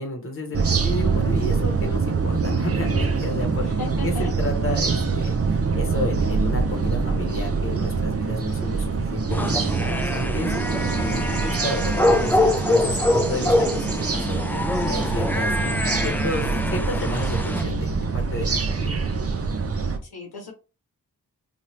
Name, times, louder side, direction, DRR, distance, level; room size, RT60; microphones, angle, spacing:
voice 1, 0.0-3.7 4.0-10.5 11.0-15.8 16.0-17.9 18.1-19.1, left 1 dB, 35° left, 3 dB, 1.2 m, -31 dB
sound 1, 0.5-20.0, right 4 dB, 40° right, 0.6 m, -25 dB
voice 2, 3.6-4.3 20.1-20.5, left 4 dB, 80° left, 2 dB, 1.0 m, -35 dB
sound 2, 9.3-17.6, left 1 dB, 5° left, 0.4 m, -24 dB
2.8 x 2.5 x 3.1 m, 0.31 s
cardioid pair, 50°, 38 cm